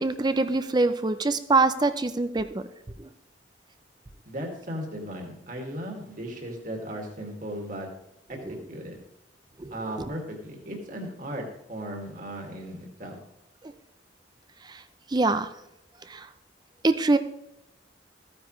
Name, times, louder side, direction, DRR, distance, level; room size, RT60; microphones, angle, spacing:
voice 1, 0.0-2.6 3.0-3.1 8.5-8.6 9.6-10.1 14.7-14.8 15.1-15.5 16.1-16.3 16.8-17.2, right 3 dB, 20° right, 11 dB, 0.5 m, -24 dB
voice 2, 4.3-7.9 8.3-8.4 8.7-9.0 9.7-13.2, equal, 45° right, 1 dB, 2.2 m, -36 dB
14.5 x 9.6 x 3.2 m, 0.86 s
head